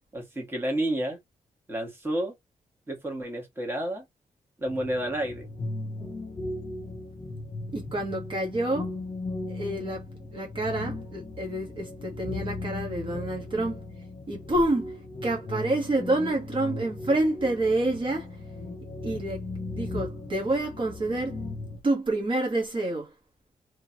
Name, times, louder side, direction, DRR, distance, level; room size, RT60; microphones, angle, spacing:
voice 1, 0.1-1.2 1.7-2.3 2.9-4.0 4.6-5.5, right 1 dB, 15° right, 2.0 m, -30 dB
sound 1, 4.7-21.8, left 2 dB, 35° left, 1.1 m, -37 dB
voice 2, 7.7-8.9 9.5-10.0 10.3-13.8 14.3-15.0 15.2-18.4 19.0-19.4 19.7-21.4 21.8-23.1, right 2 dB, 40° right, 1.5 m, -28 dB
3.8 x 3.3 x 3.0 m
wide cardioid pair, 125°, 13 cm